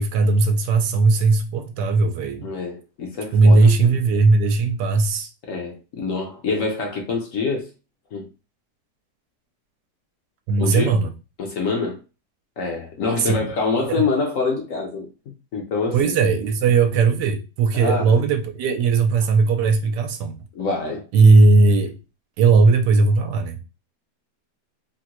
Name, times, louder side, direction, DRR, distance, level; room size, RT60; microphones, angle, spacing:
voice 1, 0.0-2.5 3.3-5.3 10.5-11.1 13.2-13.5 13.9-14.0 15.9-20.3 21.1-21.9 22.4-23.6, right 3 dB, 85° right, 1.2 m, -17 dB
voice 2, 2.4-4.0 5.4-7.7 8.1-8.3 10.6-10.9 11.4-12.0 12.6-16.2 17.7-18.3 20.5-21.1, left 4 dB, 60° left, 0.9 m, -26 dB
3.7 x 2.1 x 2.9 m
omnidirectional pair, 1.9 m